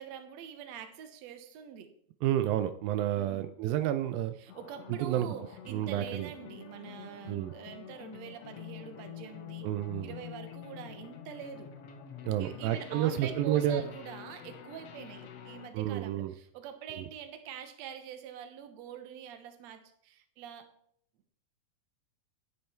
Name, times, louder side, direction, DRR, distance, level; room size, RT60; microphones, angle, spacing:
voice 1, 0.0-1.9 3.2-3.5 4.4-9.7 10.0-11.7 12.4-20.7, right 9 dB, 60° right, 8 dB, 2.1 m, -45 dB
voice 2, 2.2-4.3 5.0-5.3 5.7-6.3 7.3-7.5 9.6-10.1 12.2-13.8 15.7-16.3 16.9-17.1, right 12 dB, 80° right, 10 dB, 2.4 m, -30 dB
sound 1, 4.5-15.7, left 9 dB, 70° left, 1.4 m, -47 dB
11.0 x 10.0 x 4.5 m, 0.66 s
omnidirectional pair, 4.2 m